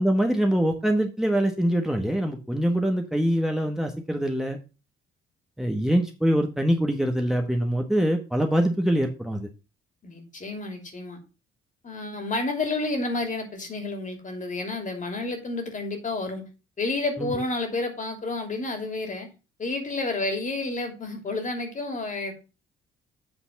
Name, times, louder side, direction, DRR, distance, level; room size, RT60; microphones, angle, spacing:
voice 1, 0.0-4.6 5.6-9.5 17.2-17.3, equal, ahead, 4 dB, 1.2 m, -24 dB
voice 2, 10.0-11.2 11.8-16.4 16.8-19.3 19.6-22.3, left 2 dB, 40° left, 5 dB, 2.8 m, -30 dB
8.0 x 4.1 x 5.9 m, 0.31 s
cardioid pair, 90°, 20 cm